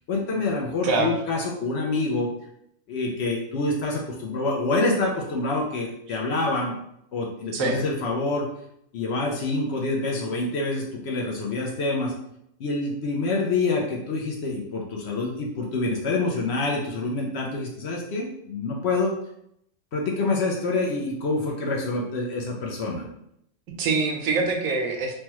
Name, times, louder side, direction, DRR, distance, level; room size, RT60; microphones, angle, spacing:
voice 1, 0.1-2.3 2.9-6.8 7.1-8.5 8.9-12.1 12.6-19.1 19.9-23.0, left 3 dB, 65° left, -1 dB, 0.7 m, -26 dB
voice 2, 23.8-25.1, right 3 dB, 85° right, 2 dB, 1.0 m, -24 dB
3.3 x 2.2 x 2.9 m, 0.75 s
omnidirectional pair, 1.4 m